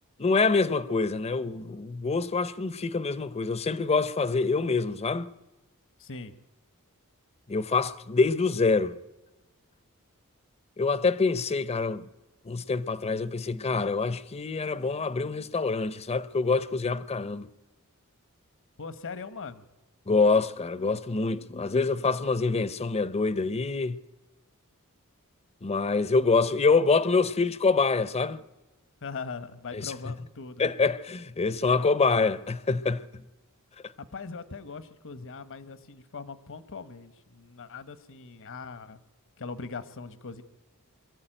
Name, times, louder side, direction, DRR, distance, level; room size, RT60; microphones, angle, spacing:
voice 1, 0.2-5.3 7.5-8.9 10.8-12.1 12.5-17.5 20.1-24.0 25.6-28.4 29.7-29.9 30.6-33.0, left 4 dB, 30° left, 0.6 m, -26 dB
voice 2, 6.0-6.3 18.8-19.6 29.0-30.6 34.0-39.0 39.4-40.4, left 4 dB, 60° left, 1.1 m, -40 dB
22.5 x 14.0 x 9.0 m
head